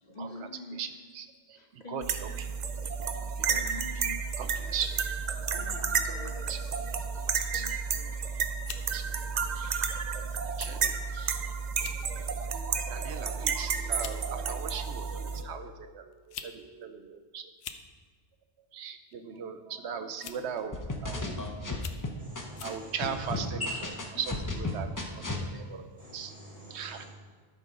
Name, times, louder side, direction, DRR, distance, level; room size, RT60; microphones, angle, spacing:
voice 1, 0.0-0.8 1.5-2.5 3.4-4.2 4.6-4.9 5.3-8.1, left 1 dB, 40° left, 3 dB, 1.0 m, -45 dB
voice 2, 0.7-2.3 3.4-3.5 4.4-4.9 6.0-6.6 7.2-7.6 8.9-9.0 9.5-9.9 10.6-11.4 12.0-17.5 18.7-21.4 22.6-23.6 24.1-26.3 26.7-27.0, right 7 dB, 70° right, 9 dB, 0.9 m, -39 dB
sound 1, 2.0-15.4, right 6 dB, 50° right, 0.6 m, -32 dB
sound 2, 8.0-8.2 8.6-8.9 9.7-9.9 10.6-10.7 11.1-11.2 11.7-12.0 12.5-12.8 13.6-13.7 14.0-14.2 15.3-15.4 16.1-16.6 16.8-16.9 17.5-17.9 19.1-19.4 20.2-20.5 21.1-21.2 21.7-22.1 22.6-22.8, left 8 dB, 70° left, 0.8 m, -43 dB
sound 3, 20.7-22.7 23.0-25.4, left 2 dB, 20° left, 0.6 m, -34 dB
voice 3, 22.2-23.3 23.6-24.0 26.0-27.1, left 1 dB, 5° right, -6 dB, 2.8 m, -42 dB
12.0 x 4.7 x 5.2 m, 1.5 s
omnidirectional pair, 1.2 m